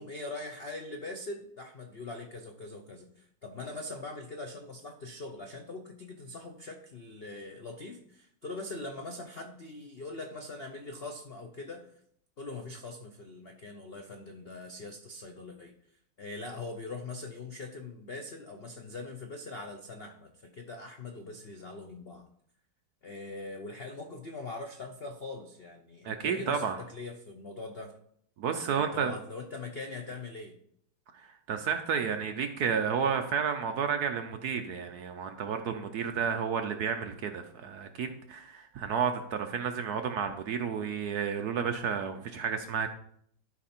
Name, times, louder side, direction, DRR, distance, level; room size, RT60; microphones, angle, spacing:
voice 1, 0.0-11.9 12.4-15.7 16.2-22.3 23.0-27.9 28.7-30.5 36.1-36.2, left 2 dB, 85° left, 4 dB, 0.5 m, -42 dB
voice 2, 26.0-26.8 28.4-29.1 31.1-42.9, right 6 dB, 65° right, 6 dB, 1.0 m, -31 dB
12.5 x 5.2 x 4.3 m, 0.67 s
omnidirectional pair, 2.2 m